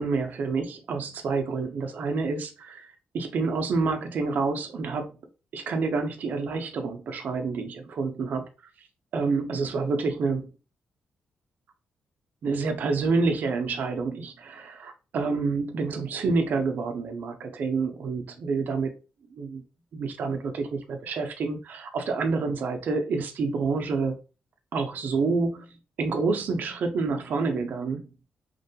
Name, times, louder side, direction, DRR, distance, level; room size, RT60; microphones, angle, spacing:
voice 1, 0.0-5.1 5.5-8.5 9.1-10.5 12.4-18.9 19.3-19.6 19.9-24.1 24.7-25.7 26.0-28.0, right 4 dB, 55° right, 0.4 m, -28 dB
2.5 x 2.1 x 2.7 m
cardioid pair, 140°, 3 cm